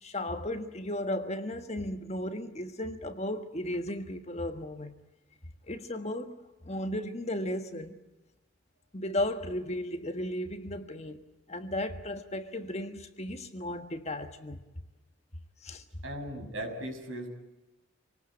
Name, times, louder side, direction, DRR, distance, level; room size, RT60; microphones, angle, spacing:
voice 1, 0.0-4.9 5.7-8.0 8.9-14.6 15.6-15.8, left 1 dB, 30° left, 1.5 m, -35 dB
voice 2, 16.0-17.3, right 1 dB, 65° right, 6.2 m, -37 dB
28.0 x 19.0 x 8.7 m
head